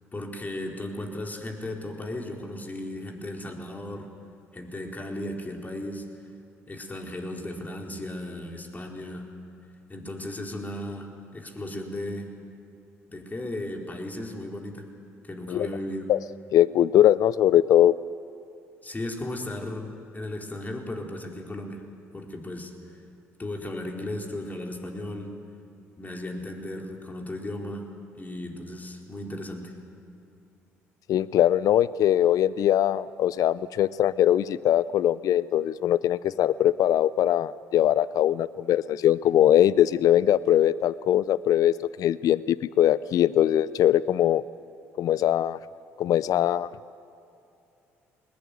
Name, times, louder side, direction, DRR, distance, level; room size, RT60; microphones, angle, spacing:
voice 1, 0.1-4.1 4.5-6.0 6.7-9.3 9.9-12.3 13.1-14.9 15.2-16.1 18.8-21.8 22.1-23.0 23.4-25.3 26.0-27.9 28.1-29.7, left 1 dB, 25° left, 2 dB, 4.4 m, -35 dB
voice 2, 16.5-17.9 31.1-44.4 45.0-45.6 46.0-46.7, left 11 dB, 60° left, 19 dB, 0.5 m, -21 dB
21.0 x 20.5 x 9.4 m, 2.6 s
hypercardioid pair, 50°, 7 cm